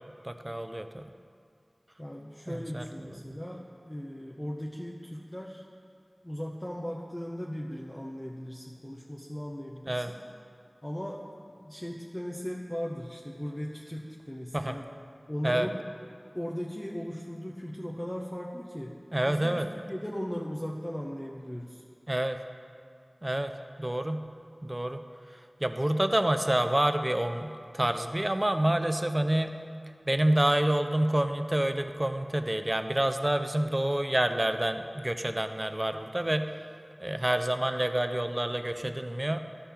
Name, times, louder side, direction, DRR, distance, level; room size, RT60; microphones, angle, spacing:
voice 1, 0.2-1.0 2.5-2.9 3.2-3.4 9.9-10.1 14.5-14.8 15.4-15.7 19.1-19.6 22.1-22.4 23.2-23.5 23.8-24.2 24.6-25.0 25.6-29.5 30.1-36.5 37.0-39.4, right 1 dB, 30° right, 8 dB, 0.5 m, -28 dB
voice 2, 2.0-5.7 6.2-10.2 10.8-14.9 15.3-15.8 16.3-19.0 19.3-21.8, equal, 15° left, -2 dB, 0.7 m, -38 dB
12.5 x 5.5 x 4.4 m, 2.3 s
wide cardioid pair, 50°, 0 cm